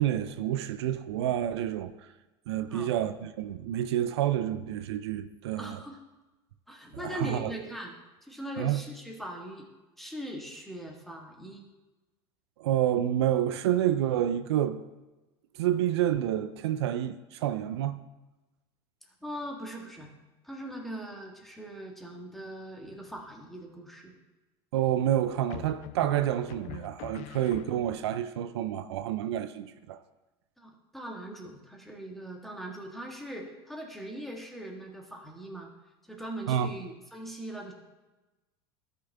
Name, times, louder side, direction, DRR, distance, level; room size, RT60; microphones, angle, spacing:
voice 1, 0.0-2.1 2.5-5.8 6.9-7.5 8.6-8.8 12.6-14.8 15.5-18.0 24.7-30.0 36.5-36.7, right 11 dB, 80° right, 0.5 m, -29 dB
voice 2, 5.6-6.0 6.7-7.9 8.2-9.7 10.0-11.7 19.2-20.1 20.4-24.1 30.6-35.7 36.1-37.7, right 1 dB, ahead, 1.7 m, -40 dB
sound 1, 22.8-23.4 25.5-28.2, left 15 dB, 55° left, 0.4 m, -45 dB
13.0 x 5.7 x 3.5 m
hypercardioid pair, 95°, 14 cm